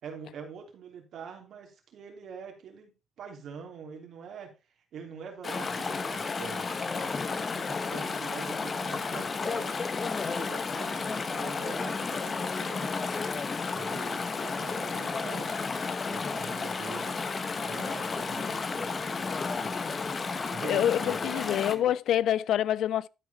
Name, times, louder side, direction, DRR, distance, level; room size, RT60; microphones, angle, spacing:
voice 1, 0.0-4.5 4.9-9.8 10.0-13.2 13.7-15.5 16.1-19.7 20.2-21.9, right 6 dB, 75° right, 3.0 m, -45 dB
Chatter / Stream, 5.4-21.8, left 4 dB, 40° left, 1.0 m, -32 dB
voice 2, 20.6-23.1, left 11 dB, 80° left, 0.3 m, -26 dB
12.0 x 4.8 x 4.1 m
cardioid pair, 90°, 0 cm